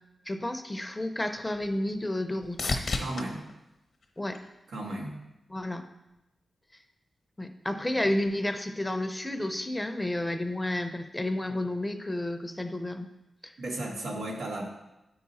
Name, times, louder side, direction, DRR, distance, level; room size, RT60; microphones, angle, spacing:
voice 1, 0.3-2.8 4.2-4.4 5.5-5.8 7.4-13.1 13.4-13.5, left 1 dB, 15° left, 7 dB, 0.6 m, -31 dB
sound 1, 0.8-5.1 5.6-6.2 14.0-14.1, left 3 dB, 70° left, 1.0 m, -37 dB
voice 2, 3.0-3.4 4.7-5.2 13.6-14.7, right 1 dB, 90° right, -1 dB, 1.4 m, -34 dB
9.0 x 4.8 x 4.1 m, 0.95 s
cardioid pair, 65°, 0 cm